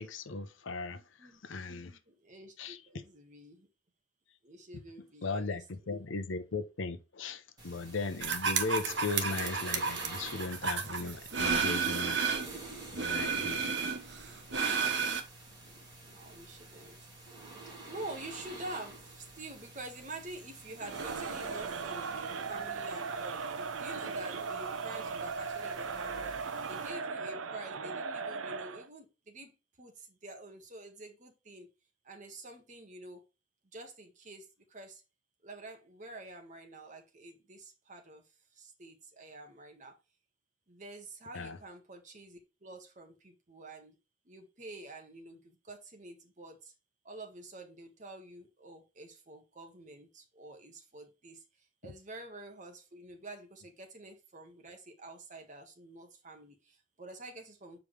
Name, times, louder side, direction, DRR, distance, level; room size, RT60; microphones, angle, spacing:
voice 1, 0.0-2.0 2.6-2.8 5.2-12.3 12.9-13.6 41.3-41.6 51.8-51.9, left 3 dB, 75° left, 0.8 m, -37 dB
voice 2, 0.9-3.7 4.4-6.0 8.6-9.0 15.6-17.1 17.9-22.0 22.5-23.5 23.8-26.4 26.7-31.7 32.0-33.2 33.7-35.0 35.4-38.2 38.5-40.0 40.7-43.9 44.2-46.7 47.0-57.8, right 2 dB, 40° right, 1.4 m, -48 dB
sound 1, 7.6-26.9, right 2 dB, 20° right, 2.6 m, -49 dB
sound 2, 8.2-12.6 12.9-15.2, right 5 dB, 60° right, 1.0 m, -32 dB
Crowd, 20.8-28.9, right 5 dB, 90° right, 0.6 m, -38 dB
7.1 x 4.9 x 3.2 m
head